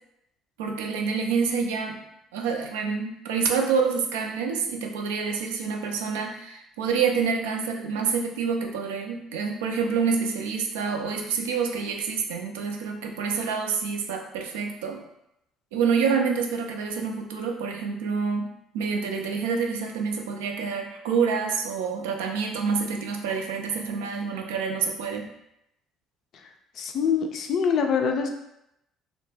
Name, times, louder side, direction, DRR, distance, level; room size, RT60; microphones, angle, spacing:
voice 1, 0.6-2.0 2.3-15.0 15.7-25.3, right 5 dB, 80° right, 3 dB, 0.3 m, -27 dB
voice 2, 26.8-28.3, left 6 dB, 55° left, 4 dB, 0.3 m, -24 dB
2.2 x 2.0 x 3.2 m, 0.81 s
hypercardioid pair, 55°, 0 cm